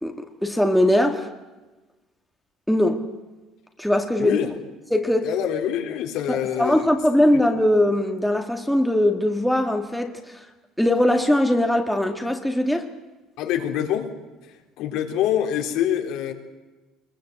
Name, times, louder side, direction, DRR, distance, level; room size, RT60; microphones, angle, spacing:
voice 1, 0.0-1.3 2.7-3.0 3.8-4.4 4.9-5.3 6.3-10.2 10.8-12.9, left 1 dB, ahead, 2.0 m, -21 dB
voice 2, 5.2-6.9 13.4-14.1 14.4-16.3, left 10 dB, 70° left, 3.7 m, -25 dB
24.0 x 22.0 x 8.0 m
cardioid pair, 130°, 0 cm